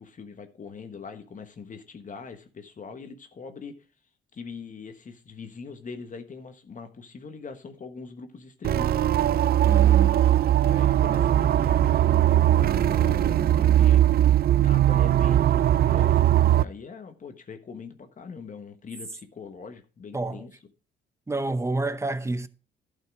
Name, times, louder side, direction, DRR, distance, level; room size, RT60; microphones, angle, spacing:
voice 1, 0.0-3.7 4.3-9.6 10.0-14.1 14.5-16.2 16.5-20.5, left 5 dB, 40° left, 1.4 m, -42 dB
sound 1, 8.6-16.6, right 12 dB, 50° right, 0.4 m, -20 dB
voice 2, 9.6-10.3 20.1-20.4 21.3-22.5, right 2 dB, 15° right, 0.8 m, -29 dB
11.5 x 5.8 x 4.8 m
cardioid pair, 90°, 20 cm